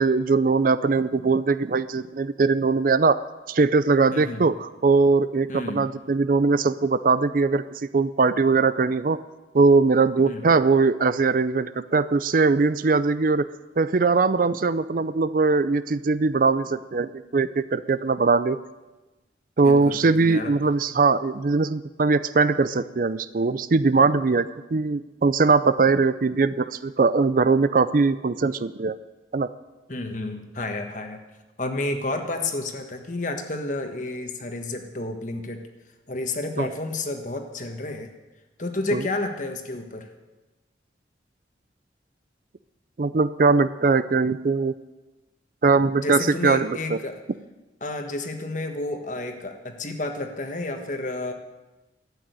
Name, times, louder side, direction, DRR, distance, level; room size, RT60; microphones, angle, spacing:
voice 1, 0.0-3.2 3.5-9.2 9.5-13.5 13.8-18.6 19.6-29.0 29.3-29.5 36.6-36.7 38.9-39.0 43.0-44.7 45.6-47.0, right 4 dB, 50° right, 15 dB, 0.4 m, -21 dB
voice 2, 5.5-5.9 10.2-10.5 19.6-20.5 29.9-31.2 31.6-35.6 36.1-38.1 38.6-40.1 46.0-47.2 47.8-51.3, left 2 dB, 45° left, 5 dB, 1.4 m, -30 dB
12.5 x 8.9 x 9.3 m, 1.1 s
head